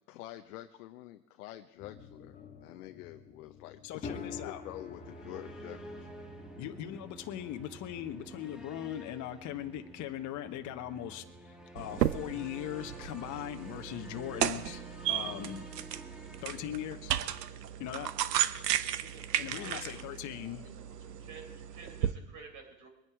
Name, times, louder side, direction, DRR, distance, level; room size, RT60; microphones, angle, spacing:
voice 1, 0.1-6.1 8.3-8.4 19.5-20.6, left 15 dB, 65° left, 7 dB, 0.9 m, -48 dB
sound 1, 1.8-12.7, left 4 dB, 15° left, 1.4 m, -50 dB
voice 2, 3.8-4.6 6.6-14.8 15.1-15.7 16.4-17.1 17.8-18.1 19.4-20.8, left 11 dB, 40° left, 7 dB, 1.2 m, -40 dB
sound 2, 4.7-17.5, right 1 dB, ahead, 1.7 m, -50 dB
sound 3, 11.8-22.1, right 11 dB, 85° right, 0.9 m, -35 dB
voice 3, 19.0-19.4 19.6-20.0 21.2-22.9, right 4 dB, 40° right, 4 dB, 4.2 m, -51 dB
22.0 x 9.8 x 4.7 m, 0.90 s
hypercardioid pair, 105°, 47 cm